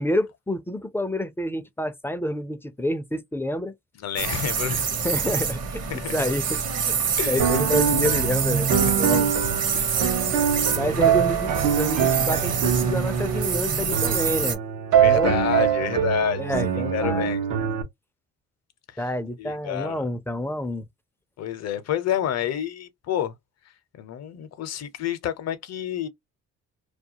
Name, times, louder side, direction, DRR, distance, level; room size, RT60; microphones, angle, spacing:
voice 1, 0.0-3.7 5.0-6.6 6.8-7.0 7.3-9.3 10.7-14.6 15.0-15.4 16.4-17.3 19.0-20.9, left 1 dB, 10° left, 0.4 m, -28 dB
voice 2, 4.0-4.9 5.9-6.2 7.2-7.6 8.7-9.0 9.7-10.2 10.8-11.2 14.9-17.4 18.9-19.0 19.4-20.1 21.4-23.3 23.9-26.1, left 9 dB, 60° left, 0.6 m, -29 dB
sound 1, 4.2-14.6, right 6 dB, 55° right, 0.9 m, -26 dB
sound 2, 7.4-17.8, right 8 dB, 80° right, 0.8 m, -24 dB
2.3 x 2.2 x 2.7 m
cardioid pair, 90°, 30 cm